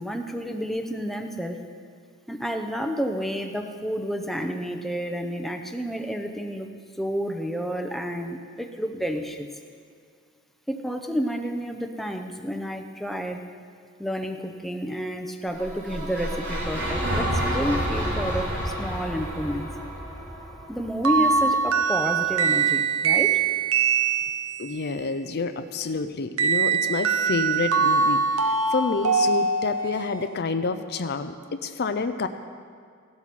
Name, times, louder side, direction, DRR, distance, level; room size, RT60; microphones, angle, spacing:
voice 1, 0.0-1.6 2.3-6.7 7.0-9.5 10.7-13.4 14.0-19.7 20.7-23.4, equal, ahead, 4 dB, 0.7 m, -30 dB
sound 1, 15.5-21.7, equal, 55° right, 3.3 m, -29 dB
sound 2, 21.0-24.8 26.4-30.1, right 5 dB, 75° right, 1.0 m, -23 dB
voice 2, 24.6-32.3, left 4 dB, 50° left, 9 dB, 0.5 m, -28 dB
16.0 x 12.0 x 4.2 m, 2.2 s
head